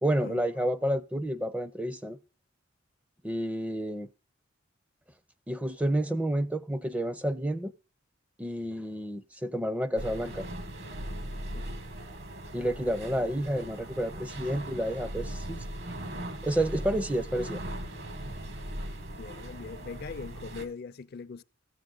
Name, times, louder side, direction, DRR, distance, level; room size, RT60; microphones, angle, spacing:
voice 1, 0.0-2.2 3.2-4.1 5.5-7.7 8.4-10.5 12.5-15.6 16.4-17.6, right 1 dB, 5° right, 0.5 m, -30 dB
sound 1, 10.0-20.7, right 1 dB, 55° right, 1.2 m, -39 dB
voice 2, 19.2-21.4, left 5 dB, 50° left, 0.4 m, -41 dB
13.5 x 7.8 x 3.8 m
head